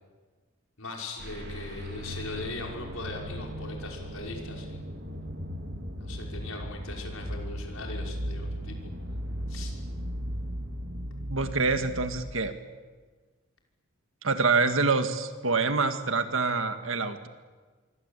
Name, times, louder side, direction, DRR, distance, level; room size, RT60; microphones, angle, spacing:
voice 1, 0.8-4.8 6.0-8.9 9.5-9.7, left 3 dB, 80° left, 1 dB, 6.0 m, -40 dB
sound 1, 1.2-12.1, equal, 55° right, 4.0 m, -37 dB
voice 2, 11.3-12.5 14.2-17.3, right 4 dB, 70° right, 8 dB, 2.0 m, -26 dB
26.0 x 24.0 x 8.4 m, 1.4 s
head